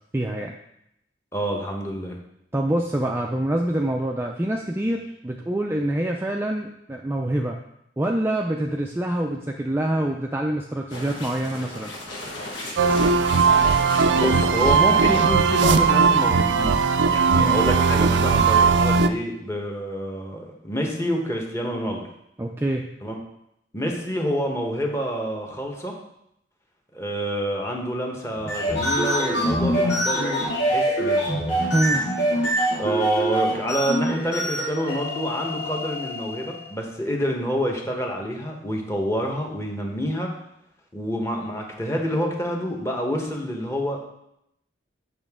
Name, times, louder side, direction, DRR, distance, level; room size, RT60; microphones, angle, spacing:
voice 1, 0.1-0.5 2.5-7.6 8.0-11.9 17.3-17.6 22.4-22.9 31.7-32.1, right 1 dB, 15° right, 1 dB, 0.4 m, -25 dB
voice 2, 1.3-2.2 14.1-22.0 23.0-23.2 23.7-26.0 26.9-31.3 32.8-40.3 40.9-44.0, equal, 15° left, 1 dB, 1.1 m, -27 dB
sound 1, 10.9-16.3, left 1 dB, 80° left, 1.5 m, -34 dB
sound 2, 12.8-19.1, right 5 dB, 70° right, 0.4 m, -18 dB
sound 3, 28.4-36.6, right 1 dB, 60° left, 2.0 m, -24 dB
7.6 x 5.8 x 3.6 m, 0.78 s
head